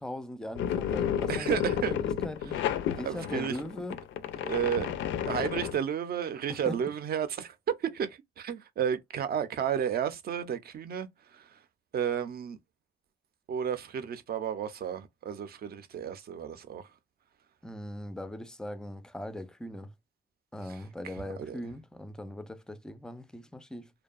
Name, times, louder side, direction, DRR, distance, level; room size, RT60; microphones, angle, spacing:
voice 1, 0.0-4.0 6.5-6.8 17.6-19.9 20.5-23.9, left 1 dB, 5° left, 0.3 m, -40 dB
sound 1, 0.6-5.8, left 9 dB, 75° left, 0.4 m, -32 dB
voice 2, 1.3-2.0 3.0-3.6 4.4-4.9 5.2-11.6 11.9-12.6 13.5-16.9 20.7-20.8 21.0-21.6, right 8 dB, 50° right, 0.5 m, -32 dB
2.6 x 2.2 x 2.3 m
cardioid pair, 90°, 20 cm